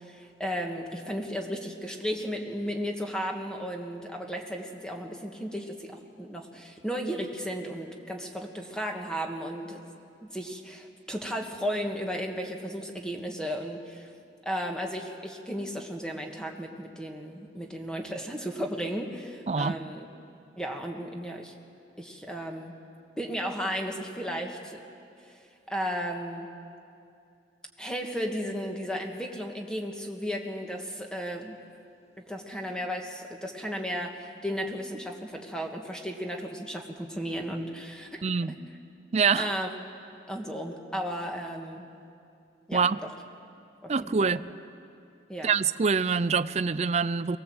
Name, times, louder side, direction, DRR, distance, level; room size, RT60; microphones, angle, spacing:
voice 1, 0.0-9.8 10.2-14.1 14.4-20.1 20.6-21.5 22.0-22.7 23.2-24.8 25.2-26.5 27.8-31.6 32.2-38.2 38.5-38.6 39.4-39.7 40.3-41.9 42.7-43.1 43.8-44.4 45.3-45.6, equal, 5° left, 2 dB, 1.6 m, -34 dB
voice 2, 38.2-38.6 39.1-39.5 42.7-43.0 43.9-44.4 45.4-47.4, right 5 dB, 35° right, 14 dB, 0.4 m, -25 dB
22.5 x 19.0 x 7.9 m, 2.5 s
head